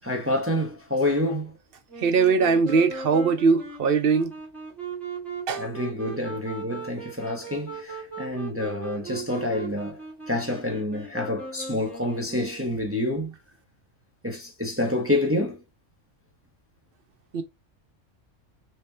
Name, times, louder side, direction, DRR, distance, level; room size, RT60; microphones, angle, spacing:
voice 1, 0.0-1.5 5.6-10.0 10.3-13.3 14.2-15.6, left 1 dB, 15° right, 0.6 m, -28 dB
Wind instrument woodwind instrument, 1.9-13.0, right 4 dB, ahead, 1.4 m, -38 dB
voice 2, 2.0-4.3 5.5-5.6 17.3-17.4, right 5 dB, 55° right, 0.8 m, -21 dB
3.4 x 2.9 x 3.2 m
omnidirectional pair, 1.3 m